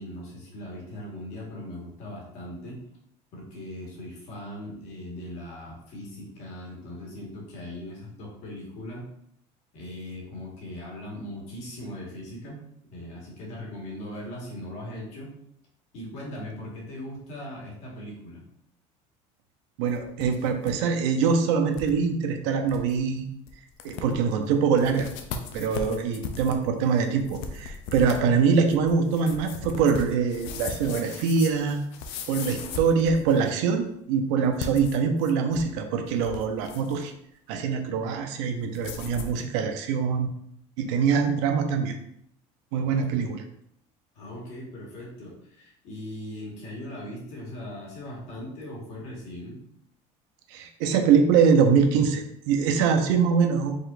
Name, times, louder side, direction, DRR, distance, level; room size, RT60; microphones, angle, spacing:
voice 1, 0.0-2.8 3.3-9.1 9.7-12.6 12.9-15.4 15.9-18.4 44.1-49.6, left 1 dB, 45° left, -3 dB, 1.7 m, -39 dB
voice 2, 19.8-23.3 23.8-25.1 25.5-31.8 32.3-37.1 37.5-40.3 40.8-41.9 42.7-43.4 50.5-53.8, right 6 dB, 80° right, 5 dB, 0.7 m, -23 dB
sound 1, 19.9-20.7 21.0-21.1 21.7-21.9 22.4-22.5 22.7-23.0 23.5-23.6 23.8-24.3 24.8-33.6 34.4-35.7 36.1-37.0 38.7-39.4, left 5 dB, 70° left, 0.6 m, -38 dB
5.1 x 3.9 x 2.6 m, 0.72 s
cardioid pair, 175°, 16 cm